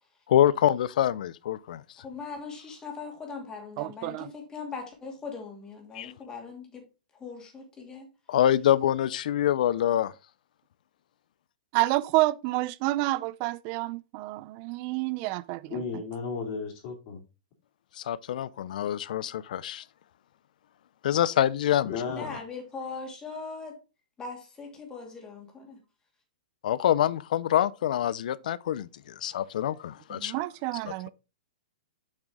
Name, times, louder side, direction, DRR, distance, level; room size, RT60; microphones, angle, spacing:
voice 1, 0.3-1.8 5.9-6.1 8.3-10.1 18.0-19.8 21.0-22.0 26.6-30.3, left 11 dB, 65° left, 0.5 m, -25 dB
voice 2, 2.0-6.8 7.1-8.1 22.1-23.8 24.2-25.8, left 4 dB, 15° left, 2.5 m, -40 dB
voice 3, 3.8-4.3 11.7-16.0 30.1-31.1, right 19 dB, 35° right, 0.4 m, -29 dB
voice 4, 15.7-17.2 21.9-22.4, left 5 dB, 45° left, 2.4 m, -34 dB
6.5 x 6.1 x 3.6 m
hypercardioid pair, 145°, 5 cm